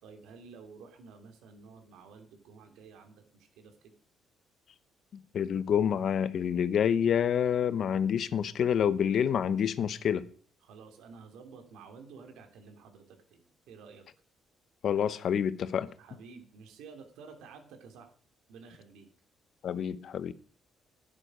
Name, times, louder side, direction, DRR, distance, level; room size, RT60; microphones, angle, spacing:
voice 1, 0.0-3.9 10.6-14.1 16.0-18.1 18.5-19.1, right 5 dB, 90° right, 2.8 m, -51 dB
voice 2, 5.1-10.2 14.8-15.9 19.6-20.3, left 8 dB, 55° left, 0.9 m, -28 dB
11.5 x 10.5 x 5.0 m
cardioid pair, 115°, 0 cm